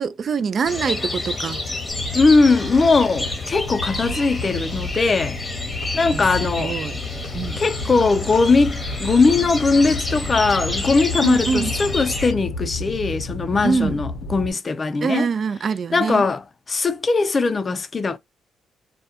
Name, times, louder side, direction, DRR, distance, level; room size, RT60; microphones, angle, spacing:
voice 1, 0.0-1.6 6.1-7.0 7.3-7.6 11.2-11.7 13.6-14.0 15.0-16.2, right 5 dB, 50° right, 0.3 m, -24 dB
sound 1, 0.7-12.3, left 2 dB, 20° left, 0.8 m, -29 dB
sound 2, 1.9-14.5, left 2 dB, 90° left, 0.6 m, -32 dB
voice 2, 2.1-5.4 5.9-6.8 7.6-15.3 15.9-18.2, left 4 dB, 35° left, 0.4 m, -20 dB
2.3 x 2.1 x 2.7 m
cardioid pair, 90°, 0 cm